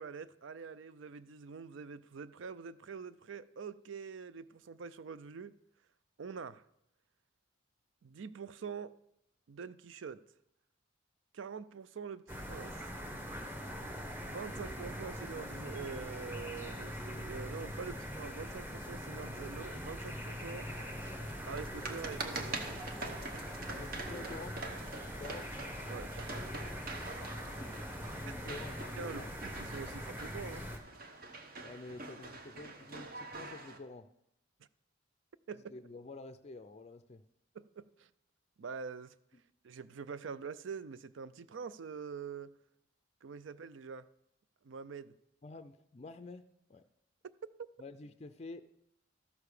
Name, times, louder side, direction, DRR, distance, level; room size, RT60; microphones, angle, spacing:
voice 1, 0.0-5.5 6.2-6.6 8.0-8.9 9.5-10.2 11.3-12.8 14.3-20.7 21.5-22.8 25.9-26.4 28.5-28.6 29.0-30.6 35.5-35.6 37.5-38.1 38.6-39.1 39.6-42.5 43.2-44.1 44.6-45.1, right 5 dB, 70° right, 0.4 m, -45 dB
sound 1, 12.3-30.8, equal, 10° right, 1.0 m, -42 dB
sound 2, 20.7-33.8, right 3 dB, 45° right, 1.0 m, -45 dB
voice 2, 23.7-24.6 25.2-25.5 27.9-29.3 31.6-34.1 35.7-37.2 39.3-39.4 45.4-46.8 47.8-48.6, left 3 dB, 30° left, 0.4 m, -49 dB
13.0 x 6.8 x 4.9 m
head